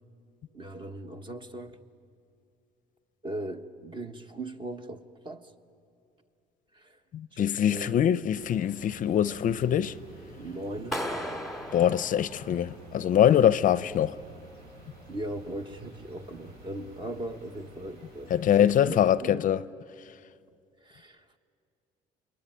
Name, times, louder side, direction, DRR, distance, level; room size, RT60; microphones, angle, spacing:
voice 1, 0.5-1.8 3.2-5.5 6.7-7.0 7.3-8.0 10.4-11.1 15.1-18.3 18.6-19.4 20.8-21.4, right 1 dB, 30° right, 1.4 m, -39 dB
voice 2, 7.1-10.0 11.7-14.2 18.3-19.6, left 10 dB, 50° left, 0.6 m, -23 dB
sound 1, 8.3-19.1, right 2 dB, 70° right, 7.8 m, -50 dB
Clapping, 10.9-13.0, equal, ahead, 2.2 m, -36 dB
28.5 x 22.0 x 9.0 m
cardioid pair, 110°, 17 cm